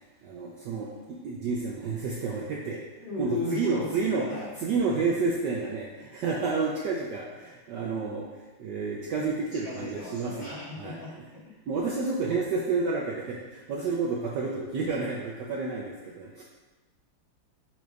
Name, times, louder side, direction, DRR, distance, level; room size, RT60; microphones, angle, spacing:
voice 1, 0.2-11.0 11.7-16.4, right 4 dB, 70° right, -2 dB, 1.0 m, -30 dB
voice 2, 3.0-4.5 9.6-11.5, left 2 dB, 55° left, -9 dB, 2.7 m, -36 dB
5.9 x 3.1 x 5.1 m, 1.2 s
omnidirectional pair, 2.4 m